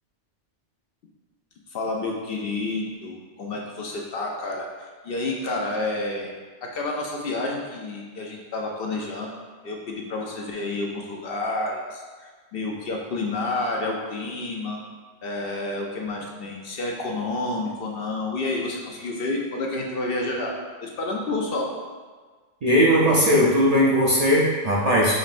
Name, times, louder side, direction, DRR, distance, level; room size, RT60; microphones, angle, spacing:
voice 1, 1.7-6.3 6.6-9.4 9.6-14.8 15.2-20.5 20.8-21.7, left 2 dB, 65° left, -1 dB, 0.7 m, -29 dB
voice 2, 22.6-25.1, equal, 50° right, -6 dB, 0.5 m, -18 dB
5.3 x 3.1 x 2.5 m, 1.4 s
omnidirectional pair, 1.2 m